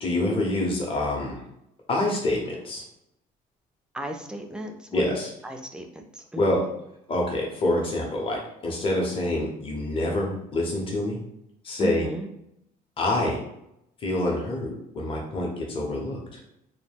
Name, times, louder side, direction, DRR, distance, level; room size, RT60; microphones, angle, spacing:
voice 1, 0.0-1.4 1.9-2.8 4.9-5.3 6.4-6.7 7.1-11.2 11.6-12.1 13.0-13.4 14.0-16.4, left 1 dB, 30° left, -1 dB, 0.7 m, -26 dB
voice 2, 3.9-5.2 5.4-6.7 11.8-12.3, right 1 dB, 5° right, 4 dB, 0.3 m, -35 dB
2.2 x 2.1 x 3.3 m, 0.79 s
cardioid pair, 110°, 17 cm